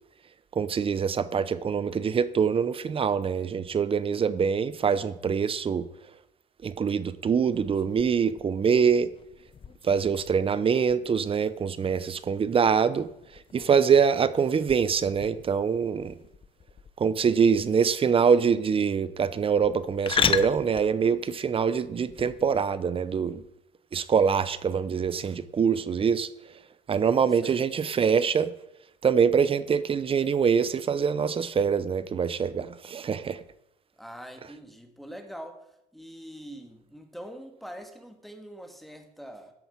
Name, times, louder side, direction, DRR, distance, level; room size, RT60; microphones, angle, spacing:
voice 1, 0.5-5.9 6.6-9.1 9.8-16.2 17.0-23.4 23.9-26.3 26.9-28.5 29.0-33.4, right 6 dB, 35° right, 0.7 m, -24 dB
sound 1, 7.5-22.6, left 7 dB, 30° left, 0.6 m, -37 dB
voice 2, 34.0-35.6 35.9-39.5, equal, ahead, 1.7 m, -43 dB
13.0 x 7.9 x 4.6 m
cardioid pair, 110°, 17 cm